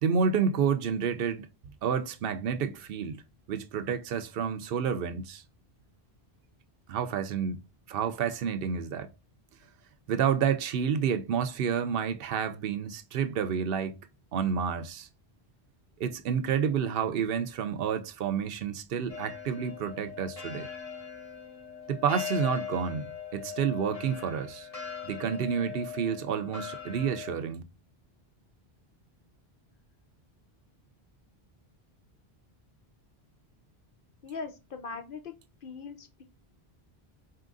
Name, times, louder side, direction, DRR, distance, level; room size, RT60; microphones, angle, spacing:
voice 1, 0.0-1.5 1.8-3.2 3.5-5.4 6.9-7.6 7.9-9.1 10.1-14.0 14.3-15.1 16.0-20.7 21.9-24.7 25.0-27.6, right 7 dB, 70° right, 0.7 m, -29 dB
sound 1, 19.1-27.3, left 7 dB, 35° left, 1.3 m, -40 dB
voice 2, 34.2-35.3 35.6-36.2, left 4 dB, 60° left, 0.7 m, -40 dB
4.3 x 3.7 x 2.4 m
omnidirectional pair, 1.1 m